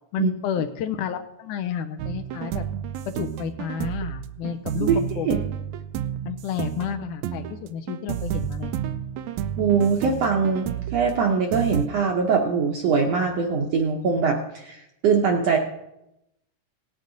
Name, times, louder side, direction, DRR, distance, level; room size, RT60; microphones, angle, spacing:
voice 1, 0.1-2.7 3.1-5.4 6.3-8.7, left 8 dB, 80° left, 7 dB, 2.0 m, -31 dB
sound 1, 2.0-11.9, right 10 dB, 90° right, 1.6 m, -31 dB
voice 2, 9.6-15.6, right 5 dB, 70° right, 2 dB, 1.5 m, -22 dB
18.5 x 8.5 x 3.9 m, 0.87 s
omnidirectional pair, 3.9 m